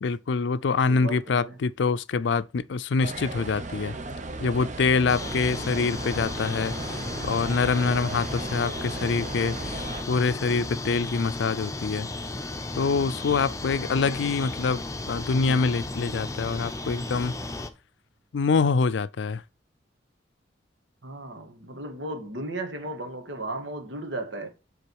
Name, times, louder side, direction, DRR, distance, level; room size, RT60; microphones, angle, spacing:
voice 1, 0.0-4.0 4.4-12.1 12.7-17.3 18.3-19.4, left 4 dB, 70° left, 0.4 m, -25 dB
voice 2, 0.8-1.6 21.0-24.5, right 2 dB, 80° right, 1.8 m, -35 dB
sound 1, 3.0-10.0, right 2 dB, 40° right, 0.9 m, -36 dB
sound 2, 5.1-17.7, left 2 dB, 15° left, 0.7 m, -34 dB
sound 3, 6.8-15.8 17.3-17.8, right 1 dB, 15° right, 1.0 m, -54 dB
9.7 x 3.9 x 4.7 m
head